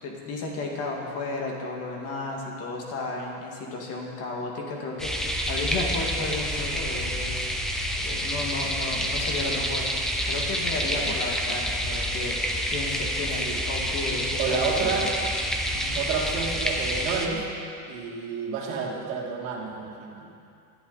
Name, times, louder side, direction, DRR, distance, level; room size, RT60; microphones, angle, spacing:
voice 1, 0.0-7.4 7.6-7.7 8.0-9.9 10.2-15.1 15.7-16.0, left 3 dB, 35° left, -1 dB, 2.0 m, -33 dB
sound 1, 5.0-17.3, equal, ahead, 0.4 m, -28 dB
voice 2, 14.4-15.1 15.9-17.4 17.9-20.3, right 5 dB, 65° right, -1 dB, 2.5 m, -30 dB
19.0 x 11.0 x 4.1 m, 2.5 s
supercardioid pair, 160°, 44 cm